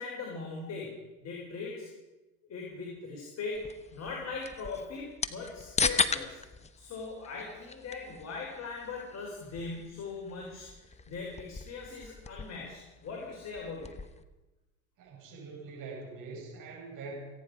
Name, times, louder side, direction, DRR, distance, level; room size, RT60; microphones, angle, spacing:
voice 1, 0.0-1.9 2.5-3.6 3.9-6.4 6.8-10.7 11.1-13.9, left 4 dB, 40° left, -2 dB, 4.8 m, -40 dB
sound 1, 3.5-14.2, left 4 dB, 15° left, 0.9 m, -37 dB
voice 2, 15.0-17.1, right 4 dB, 50° right, -2 dB, 6.8 m, -44 dB
29.5 x 9.9 x 5.0 m, 1.1 s
hypercardioid pair, 95°, 42 cm